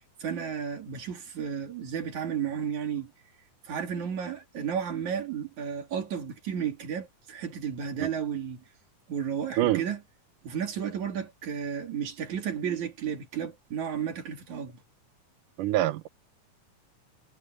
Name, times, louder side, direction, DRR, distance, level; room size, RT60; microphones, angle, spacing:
voice 1, 0.0-3.1 3.7-8.6 9.1-10.0 10.4-14.8, right 8 dB, 60° right, 4.2 m, -33 dB
voice 2, 15.6-16.1, right 14 dB, 75° right, 2.4 m, -25 dB
omnidirectional pair, 3.9 m